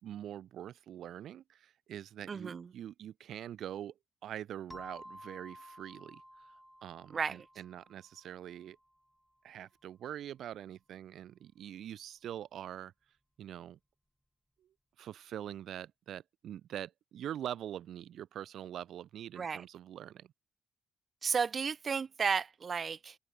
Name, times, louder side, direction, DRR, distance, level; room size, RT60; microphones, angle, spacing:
voice 1, 0.0-3.9 4.2-6.5 6.8-8.8 9.4-12.9 13.4-13.8 15.0-20.3, right 11 dB, 75° right, 2.3 m, -44 dB
voice 2, 2.3-2.7 7.1-7.4 19.4-19.6 21.2-23.2, right 6 dB, 45° right, 1.2 m, -33 dB
sound 1, 4.7-9.1, equal, ahead, 6.0 m, -53 dB
open air
cardioid pair, 90°, 0 cm